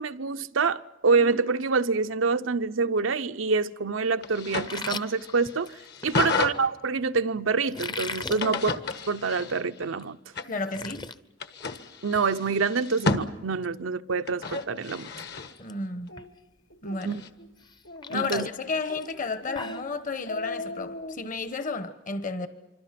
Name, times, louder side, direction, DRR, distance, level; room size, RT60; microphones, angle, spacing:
voice 1, 0.0-5.7 6.0-8.7 9.1-10.2 12.0-15.1 17.0-17.2 18.1-18.5, right 4 dB, 90° right, 0.7 m, -26 dB
sound 1, 4.2-6.5 8.4-9.8 10.3-10.6 11.4-13.2 14.3-15.5 17.0-17.3, left 3 dB, 60° left, 1.5 m, -32 dB
sound 2, 4.6-6.2 7.7-8.4 8.8-9.0 9.4-9.5 10.0-10.1 10.4-11.2 11.5-11.8 12.1-12.3 14.1-14.2 14.7-15.0 15.3-15.7 16.2-16.3 17.6-19.9, left 4 dB, 20° left, 0.7 m, -38 dB
voice 2, 10.5-11.1 15.6-16.2 16.8-17.2 18.1-22.5, left 3 dB, 45° left, 1.2 m, -32 dB
Speech, 16.1-16.3 16.7-17.0 17.4-17.5 17.9-18.5 18.9-19.1 19.4-19.8 20.1-21.2, left 2 dB, 90° left, 2.7 m, -37 dB
26.0 x 25.0 x 6.0 m
head